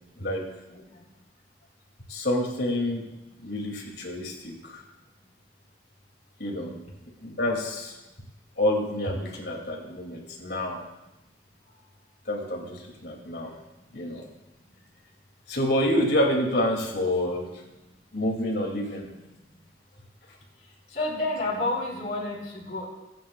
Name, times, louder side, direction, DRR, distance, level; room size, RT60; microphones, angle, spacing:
voice 1, 0.7-1.0 20.9-22.8, left 2 dB, 45° left, -6 dB, 4.1 m, -30 dB
voice 2, 2.1-3.1 3.4-4.8 6.4-6.8 7.2-7.9 8.6-10.8 12.3-13.6 13.9-14.3 15.5-17.5 18.1-19.1, left 1 dB, 70° left, 0 dB, 2.7 m, -28 dB
23.5 x 9.4 x 2.4 m, 0.97 s
head